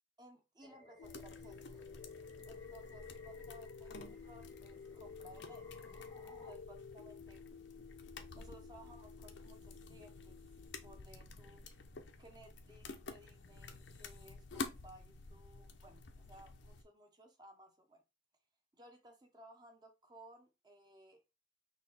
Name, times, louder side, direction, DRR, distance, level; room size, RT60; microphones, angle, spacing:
voice 1, 0.2-1.8 2.5-5.8 6.2-7.4 8.4-10.4 10.8-11.6 12.2-18.0 18.7-21.2, right 1 dB, 20° right, 0.9 m, -59 dB
sound 1, 0.6-6.5, left 2 dB, 15° left, 0.8 m, -61 dB
sound 2, 1.0-16.8, left 3 dB, 80° left, 0.7 m, -51 dB
sound 3, 1.0-11.0, left 6 dB, 65° left, 0.3 m, -53 dB
4.2 x 2.9 x 4.2 m
head